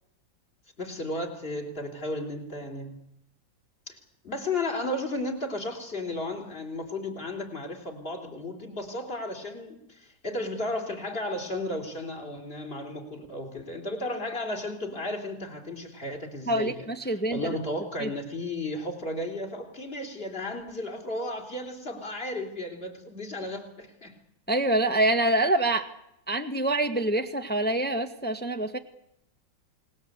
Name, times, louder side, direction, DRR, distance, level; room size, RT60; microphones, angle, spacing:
voice 1, 0.8-3.0 3.9-4.0 4.2-16.7 17.3-24.2, left 1 dB, 30° left, 4 dB, 3.9 m, -34 dB
voice 2, 16.5-17.5 18.0-18.1 24.5-25.9 26.3-28.8, right 1 dB, 5° left, 6 dB, 1.5 m, -26 dB
28.5 x 20.0 x 8.2 m, 0.79 s
omnidirectional pair, 2.0 m